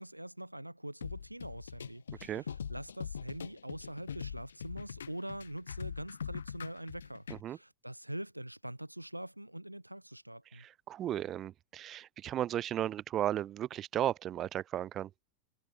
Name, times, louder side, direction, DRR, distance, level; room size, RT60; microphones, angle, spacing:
voice 1, 0.0-10.6, right 1 dB, 85° right, 2.0 m, -44 dB
sound 1, 1.0-7.4, left 7 dB, 70° left, 1.6 m, -42 dB
voice 2, 10.5-15.1, right 11 dB, 30° right, 0.4 m, -35 dB
figure-of-eight pair, 90°, 0 cm